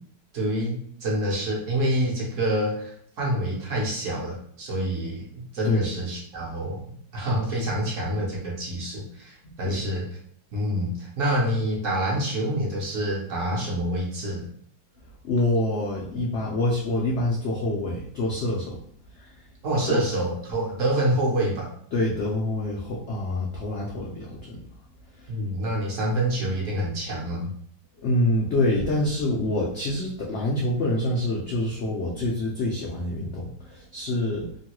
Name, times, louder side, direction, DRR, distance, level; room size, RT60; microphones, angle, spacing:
voice 1, 0.3-10.0 10.5-14.5 19.6-21.7 25.3-27.5, right 1 dB, 55° right, -4 dB, 1.0 m, -27 dB
voice 2, 15.2-18.8 19.2-19.4 19.9-20.0 21.9-24.6 25.2-25.3 28.0-34.5, left 1 dB, 85° left, -3 dB, 0.6 m, -26 dB
3.0 x 2.2 x 2.9 m, 0.64 s
omnidirectional pair, 1.8 m